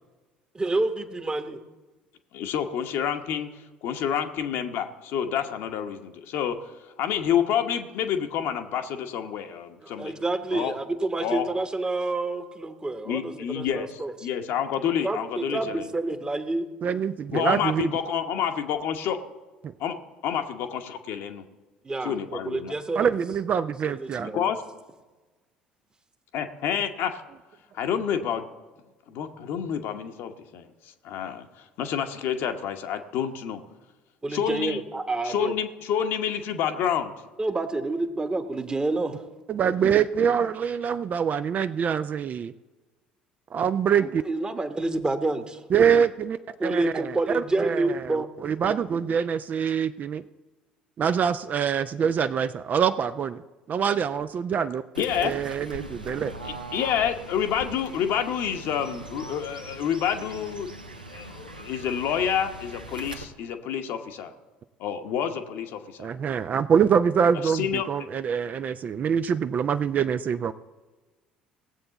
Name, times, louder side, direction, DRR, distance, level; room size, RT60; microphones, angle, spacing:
voice 1, 0.5-1.6 9.8-14.1 14.9-16.7 21.8-23.1 23.9-24.5 34.2-35.6 37.4-39.2 44.0-45.6 46.6-48.3 55.1-55.3, right 2 dB, 20° right, 9 dB, 1.1 m, -28 dB
voice 2, 2.3-3.5 3.8-6.6 7.0-10.1 10.5-10.7 11.2-11.4 13.1-15.9 17.3-19.2 19.8-19.9 20.2-21.4 22.0-22.7 24.3-24.6 26.3-27.2 27.7-28.5 29.1-30.7 31.0-31.5 31.8-33.6 34.3-34.8 35.2-37.1 55.0-55.3 56.7-60.7 61.1-64.3 64.8-66.1 67.4-67.8, left 8 dB, 55° left, 6 dB, 1.0 m, -28 dB
voice 3, 16.8-17.9 19.6-19.7 23.0-24.3 39.5-42.5 43.5-44.2 45.7-50.2 51.0-53.4 53.7-54.8 55.2-56.3 66.0-70.5, right 7 dB, 35° right, 11 dB, 0.4 m, -25 dB
Fowl / Bird, 54.9-63.2, right 1 dB, 85° right, 0.7 m, -41 dB
18.5 x 7.7 x 4.0 m, 1.2 s
figure-of-eight pair, 55°, 5 cm